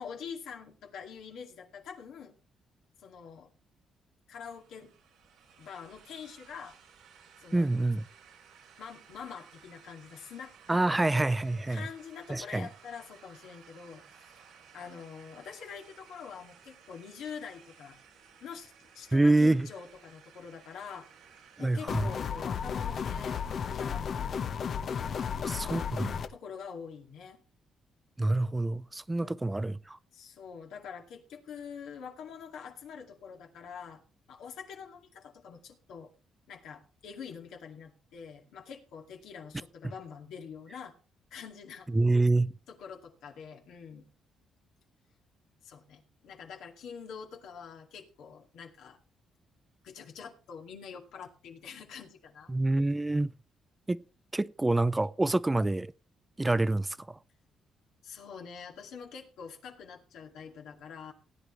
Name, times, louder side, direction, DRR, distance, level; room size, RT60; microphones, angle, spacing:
voice 1, 0.0-2.3 3.0-3.5 4.3-4.9 5.6-6.8 7.4-7.7 8.8-11.1 11.7-18.0 18.4-21.1 21.6-25.9 26.3-27.4 29.2-29.4 30.1-34.0 34.3-36.1 36.5-40.9 41.3-41.9 42.7-44.1 45.6-49.0 49.8-52.5 58.0-61.1, left 6 dB, 80° left, 2.3 m, -45 dB
sound 1, 4.5-23.8, right 7 dB, 90° right, 3.2 m, -57 dB
voice 2, 7.5-8.1 10.7-11.8 12.3-12.7 19.1-19.7 21.6-22.1 25.4-26.1 28.2-30.0 41.9-42.5 52.5-53.3 53.9-54.0 54.3-55.9 56.4-57.2, right 2 dB, 15° right, 0.5 m, -27 dB
sound 2, 21.9-26.3, left 7 dB, 55° left, 1.0 m, -33 dB
18.0 x 9.4 x 3.2 m
cardioid pair, 90°, 0 cm